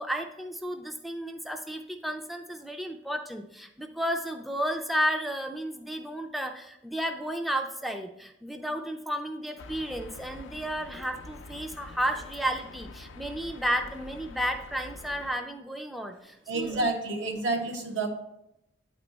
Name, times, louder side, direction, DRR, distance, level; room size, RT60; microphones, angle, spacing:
voice 1, 0.0-16.9, equal, ahead, 4 dB, 0.3 m, -32 dB
sound 1, 9.6-15.3, left 2 dB, 80° left, 0.5 m, -46 dB
voice 2, 16.5-18.1, right 3 dB, 80° right, 3 dB, 1.1 m, -29 dB
9.0 x 4.3 x 4.1 m, 0.84 s
head